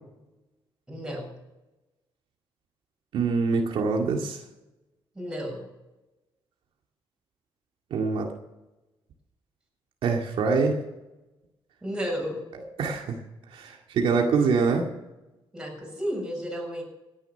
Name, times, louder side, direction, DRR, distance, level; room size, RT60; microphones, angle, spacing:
voice 1, 0.9-1.3 5.2-5.7 11.8-12.4 15.5-16.8, equal, 10° right, -1 dB, 7.0 m, -32 dB
voice 2, 3.1-4.4 7.9-8.3 10.0-10.8 12.8-13.2 13.5-14.9, right 4 dB, 70° right, 1 dB, 2.1 m, -24 dB
17.0 x 10.5 x 5.8 m, 1.0 s
cardioid pair, 120°, 9 cm